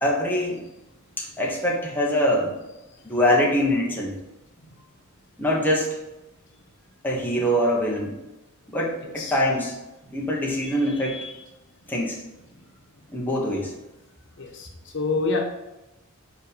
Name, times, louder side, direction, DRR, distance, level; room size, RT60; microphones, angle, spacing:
voice 1, 0.0-0.6 1.2-2.5 3.0-4.2 5.4-6.0 7.0-8.2 8.7-9.8 10.1-11.2 11.9-12.2 13.1-13.7, equal, 10° left, -3 dB, 1.3 m, -23 dB
voice 2, 9.0-9.4 11.0-11.4 14.4-14.7 14.9-15.4, left 3 dB, 60° left, 1 dB, 1.2 m, -28 dB
5.7 x 4.9 x 5.1 m, 0.97 s
head